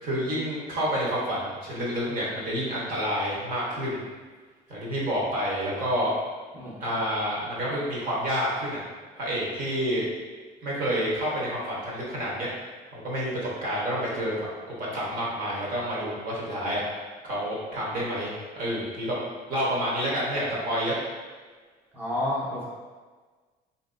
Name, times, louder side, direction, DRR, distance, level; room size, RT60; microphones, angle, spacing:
voice 1, 0.0-4.0 4.7-6.1 6.8-8.8 9.1-10.1 10.6-12.5 12.9-16.8 17.2-19.2 19.5-21.0, equal, 55° right, -5 dB, 1.0 m, -29 dB
voice 2, 6.5-7.0 21.9-22.6, left 1 dB, 10° right, -7 dB, 0.7 m, -30 dB
3.0 x 2.6 x 2.5 m, 1.4 s
cardioid pair, 110°, 17 cm